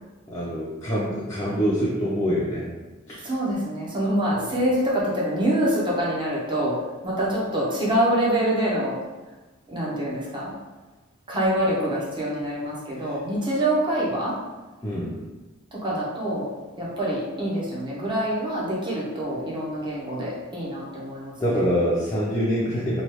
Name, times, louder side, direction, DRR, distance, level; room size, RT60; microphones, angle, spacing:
voice 1, 0.3-2.7 3.1-3.2 4.4-4.5 14.8-15.2 21.4-23.0, equal, 20° left, -8 dB, 0.5 m, -25 dB
voice 2, 3.2-6.8 7.0-9.0 9.7-10.5 11.3-14.3 15.7-16.5 16.8-21.6, right 1 dB, 20° right, -6 dB, 0.7 m, -25 dB
3.1 x 2.3 x 2.9 m, 1.2 s
head